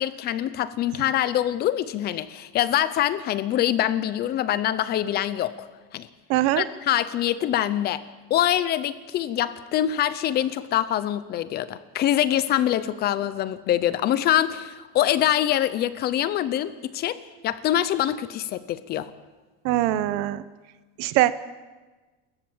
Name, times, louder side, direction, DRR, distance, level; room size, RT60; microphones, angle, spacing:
voice 1, 0.0-5.7 5.9-6.1 6.6-8.0 8.3-19.1, left 12 dB, 30° left, 15 dB, 0.6 m, -24 dB
voice 2, 6.3-6.7 19.6-20.4 21.0-21.3, right 15 dB, 50° right, 15 dB, 0.9 m, -22 dB
28.0 x 14.5 x 7.2 m, 1.3 s
cardioid pair, 175°, 32 cm